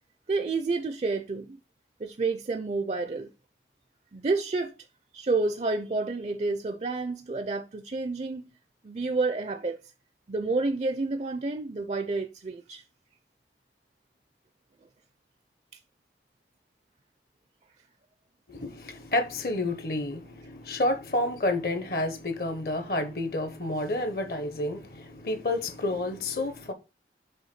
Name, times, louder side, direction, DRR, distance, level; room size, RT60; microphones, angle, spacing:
voice 1, 0.3-1.6 2.0-3.3 4.1-4.7 5.1-8.5 8.8-9.8 10.3-12.8, right 3 dB, 35° right, 0.4 m, -29 dB
voice 2, 18.5-26.7, left 2 dB, 55° left, 0.8 m, -30 dB
5.5 x 3.4 x 5.7 m
head